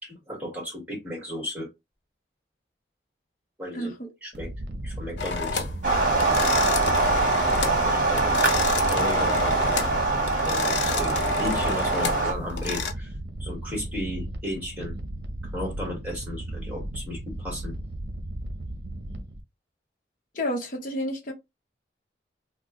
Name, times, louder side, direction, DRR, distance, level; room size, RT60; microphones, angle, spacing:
voice 1, 0.0-1.7 3.6-3.9 4.2-4.5 4.8-5.7 8.1-8.7 8.9-9.9 10.4-13.1 13.4-14.9 15.5-17.7, left 1 dB, 10° right, 1.8 m, -34 dB
sound 1, 4.3-19.4, right 1 dB, 60° right, 0.7 m, -35 dB
sound 2, 5.2-5.8 6.2-7.8 8.1-10.0 10.3-12.9, left 6 dB, 80° left, 0.6 m, -31 dB
sound 3, 5.8-12.3, right 3 dB, 45° right, 1.0 m, -23 dB
voice 2, 20.3-21.3, equal, 50° left, 0.9 m, -30 dB
2.9 x 2.3 x 3.7 m
head